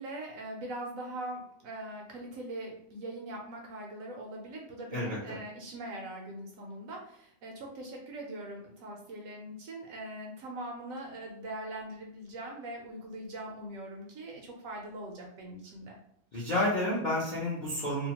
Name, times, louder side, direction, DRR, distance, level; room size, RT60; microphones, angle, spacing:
voice 1, 0.0-16.0, right 1 dB, 70° right, 0 dB, 0.9 m, -41 dB
voice 2, 16.3-18.1, left 1 dB, 55° left, -7 dB, 0.5 m, -30 dB
2.8 x 2.1 x 2.8 m, 0.71 s
omnidirectional pair, 1.7 m